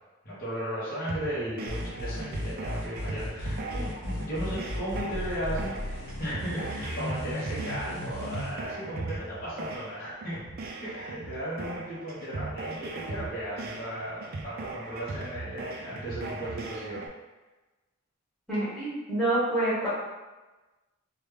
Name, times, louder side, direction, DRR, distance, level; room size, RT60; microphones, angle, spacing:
voice 1, 0.2-10.4 10.8-17.0, equal, 45° left, -10 dB, 1.1 m, -36 dB
sound 1, 1.1-17.1, right 3 dB, 45° right, 0.3 m, -39 dB
sound 2, 1.7-8.5, equal, 70° left, 0.8 m, -35 dB
voice 2, 18.5-19.9, right 1 dB, ahead, -12 dB, 1.3 m, -27 dB
3.1 x 2.3 x 3.3 m, 1.1 s
head